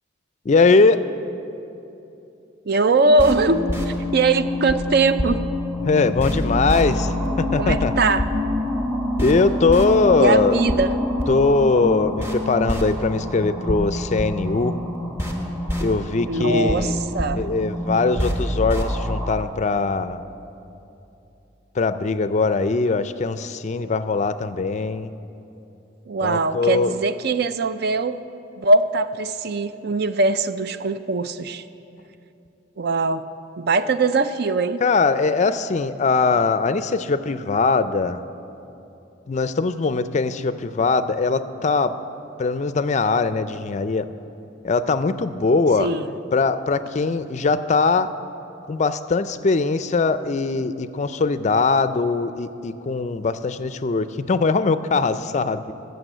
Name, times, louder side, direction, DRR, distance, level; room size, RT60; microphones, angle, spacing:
voice 1, 0.5-1.1 5.8-8.0 9.2-10.8 11.3-14.8 15.8-17.0 17.3-20.2 21.8-25.1 26.2-27.0 34.8-38.2 39.3-42.0 42.4-44.1 44.6-45.9 46.3-48.1 48.7-55.7, left 4 dB, 35° left, 12 dB, 0.4 m, -21 dB
voice 2, 2.7-5.4 7.6-8.3 10.2-10.9 16.2-17.4 26.1-28.2 28.6-31.6 32.8-33.2 33.6-34.8 45.8-46.1, right 3 dB, 55° right, 12 dB, 0.4 m, -21 dB
sound 1, 3.1-19.4, left 1 dB, 15° right, 1.1 m, -26 dB
14.5 x 6.9 x 7.8 m, 2.9 s
head